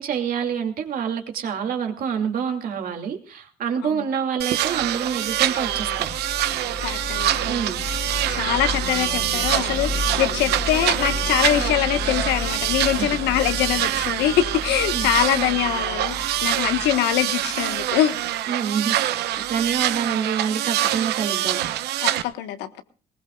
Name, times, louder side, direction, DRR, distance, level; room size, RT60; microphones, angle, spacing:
voice 1, 0.0-6.1 7.4-7.8 12.9-13.2 14.9-15.1 18.5-21.6, right 7 dB, 55° right, 4 dB, 2.6 m, -27 dB
sound 1, 4.4-22.2, right 12 dB, 75° right, 0.9 m, -25 dB
sound 2, 4.6-18.2, left 3 dB, 55° left, 4.0 m, -33 dB
Wind instrument woodwind instrument, 4.8-12.6, right 9 dB, 40° right, 1.4 m, -41 dB
voice 2, 6.8-8.0 8.3-16.2 16.4-18.2 22.0-22.8, left 12 dB, 85° left, 9 dB, 1.4 m, -23 dB
20.0 x 19.5 x 2.4 m, 0.36 s
cardioid pair, 110°, 17 cm